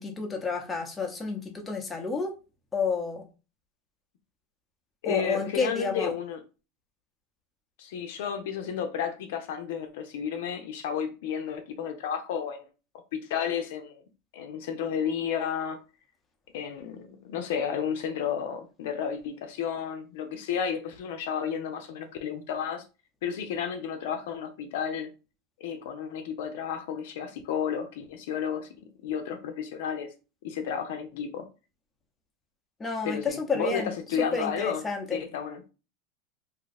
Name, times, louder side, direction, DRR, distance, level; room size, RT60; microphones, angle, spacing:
voice 1, 0.0-2.3 2.7-3.3 5.0-6.1 32.8-33.9 34.2-35.2, left 4 dB, 15° left, 0.8 m, -30 dB
voice 2, 5.0-6.4 7.8-12.6 13.1-14.0 14.3-15.8 16.5-22.8 23.2-25.1 25.6-28.7 29.0-30.1 30.4-31.5 33.0-34.8 35.1-35.6, left 7 dB, 75° left, 0.6 m, -32 dB
2.7 x 2.4 x 4.0 m
supercardioid pair, 130°, 0 cm